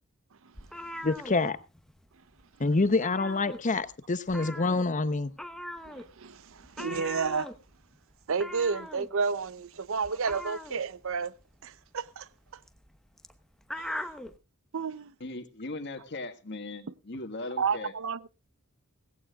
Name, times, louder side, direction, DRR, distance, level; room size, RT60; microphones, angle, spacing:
sound 1, 0.5-2.1 2.3-2.6 2.8-3.9 4.3-14.4, left 1 dB, 5° left, 0.9 m, -41 dB
voice 1, 1.0-1.6 2.6-5.3, left 3 dB, 35° left, 0.8 m, -27 dB
voice 2, 5.8-7.5 8.3-11.3 11.6-12.3 13.8-14.0 14.7-15.1 17.6-18.3, right 5 dB, 65° right, 0.7 m, -31 dB
voice 3, 15.2-17.9, left 2 dB, 55° left, 1.7 m, -38 dB
17.5 x 16.0 x 2.4 m
head